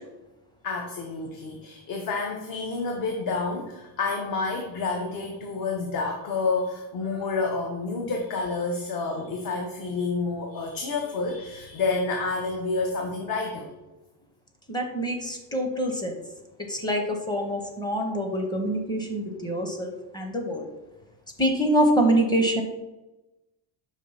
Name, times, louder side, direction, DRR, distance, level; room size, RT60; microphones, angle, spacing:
voice 1, 0.6-13.7, left 3 dB, 45° left, 2 dB, 0.8 m, -29 dB
voice 2, 14.7-16.1 16.7-20.7 21.4-22.6, right 1 dB, 10° left, 3 dB, 0.7 m, -25 dB
5.6 x 3.1 x 5.5 m, 1.0 s
cardioid pair, 155°, 46 cm